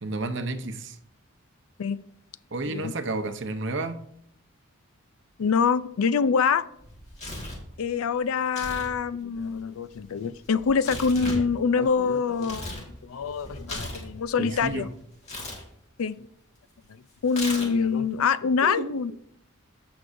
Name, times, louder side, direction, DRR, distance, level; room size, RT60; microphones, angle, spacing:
voice 1, 0.0-1.0 2.5-4.0 14.4-14.9 18.6-18.9, right 2 dB, 55° right, 9 dB, 0.7 m, -31 dB
voice 2, 5.4-6.6 7.8-14.9 16.0-16.2 17.2-19.1, left 5 dB, 80° left, 16 dB, 0.4 m, -25 dB
Tearing, 6.8-7.7 8.4-8.9 9.2-12.9 13.2-14.7 15.2-15.6 17.3-17.9, left 1 dB, 30° left, 1.8 m, -37 dB
14.5 x 6.1 x 2.6 m, 0.71 s
head